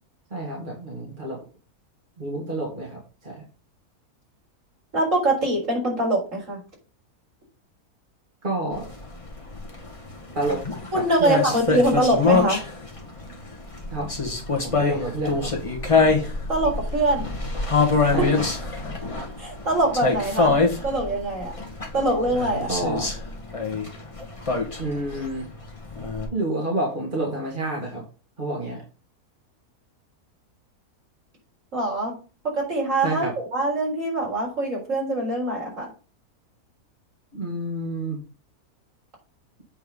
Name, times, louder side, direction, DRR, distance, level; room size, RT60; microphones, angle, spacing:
voice 1, 0.3-1.4 2.2-3.4 8.4-8.9 10.3-10.6 10.9-11.5 13.9-14.1 14.6-15.5 18.1-18.4 22.7-23.1 24.8-25.5 26.3-28.0 28.4-28.8 33.0-33.3 37.3-38.2, right 1 dB, 30° right, -3 dB, 2.3 m, -29 dB
voice 2, 4.9-6.6 10.9-12.6 16.5-17.3 19.4-20.5 20.8-21.5 21.9-22.7 31.7-32.2 32.5-33.2 33.5-35.9, right 1 dB, 55° right, -2 dB, 4.6 m, -23 dB
sound 1, 8.7-26.3, left 4 dB, 20° left, 1.6 m, -25 dB
8.5 x 4.6 x 5.3 m, 0.35 s
omnidirectional pair, 1.6 m